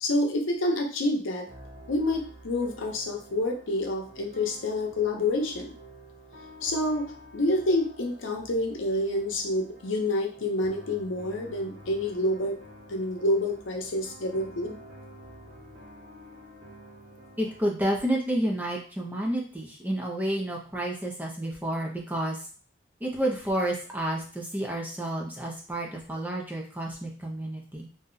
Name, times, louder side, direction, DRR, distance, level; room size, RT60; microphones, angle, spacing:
voice 1, 0.0-1.5 1.9-5.7 6.6-12.6 12.9-14.8, left 1 dB, 85° left, 2 dB, 0.6 m, -28 dB
sound 1, 1.5-17.6, equal, 45° right, 0.8 m, -49 dB
voice 2, 17.4-22.4 23.0-27.9, right 1 dB, 10° right, -2 dB, 0.5 m, -30 dB
2.7 x 2.2 x 3.7 m, 0.39 s
head